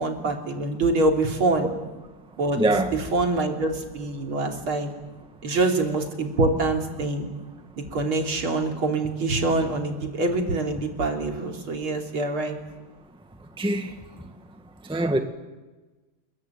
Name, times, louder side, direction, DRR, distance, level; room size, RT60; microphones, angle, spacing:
voice 1, 0.0-1.7 2.4-2.6 2.9-4.9 5.4-7.3 7.9-12.6, right 2 dB, 75° right, 4.1 m, -25 dB
voice 2, 2.6-2.9 5.5-5.6 13.6-13.9 14.9-15.2, right 1 dB, 5° right, 1.5 m, -23 dB
28.5 x 22.5 x 9.4 m
omnidirectional pair, 2.3 m